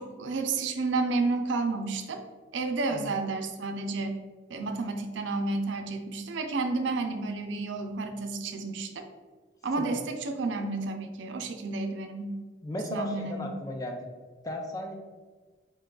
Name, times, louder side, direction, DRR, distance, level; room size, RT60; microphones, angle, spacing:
voice 1, 0.0-2.2 2.5-4.2 4.5-9.1 9.6-12.4 12.9-13.5, right 3 dB, 85° right, 6 dB, 0.4 m, -31 dB
voice 2, 12.6-14.1 14.4-15.0, left 1 dB, 20° left, 2 dB, 0.4 m, -35 dB
4.1 x 2.3 x 3.7 m, 1.4 s
head